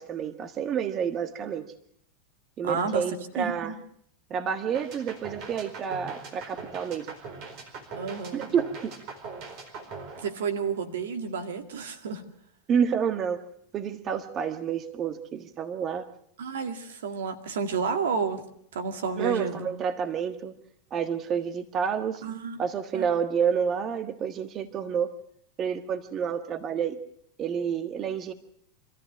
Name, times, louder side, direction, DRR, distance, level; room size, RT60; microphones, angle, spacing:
voice 1, 0.0-1.6 2.6-3.7 4.3-7.1 8.3-8.9 12.7-13.4 13.7-16.0 19.2-20.5 20.9-22.2 22.6-25.1 25.6-27.0 27.4-28.3, right 7 dB, 35° right, 9 dB, 1.5 m, -29 dB
voice 2, 2.6-3.7 8.0-8.5 10.2-12.2 16.4-18.4 18.7-19.7 22.2-22.6 22.9-23.0, right 5 dB, 75° right, 7 dB, 2.1 m, -31 dB
sound 1, 4.7-10.9, right 4 dB, 50° right, 4.4 m, -41 dB
25.0 x 14.5 x 7.3 m, 0.68 s
hypercardioid pair, 95°, 0 cm